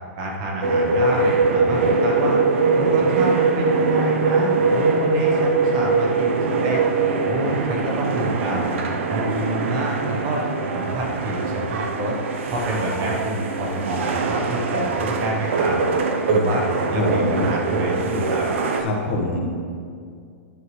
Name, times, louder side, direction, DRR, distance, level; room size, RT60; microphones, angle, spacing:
voice 1, 0.2-2.4 2.7-6.8 7.2-8.8 9.1-10.4 10.7-12.2 12.5-15.8 16.3-16.6 16.9-18.5, right 1 dB, 30° right, -1 dB, 1.0 m, -27 dB
sound 1, 0.6-18.8, right 4 dB, 60° right, 0.7 m, -22 dB
voice 2, 16.9-17.5 18.8-19.5, left 1 dB, 40° left, 0 dB, 1.3 m, -25 dB
9.8 x 7.9 x 3.2 m, 2.2 s
supercardioid pair, 175°, 8 cm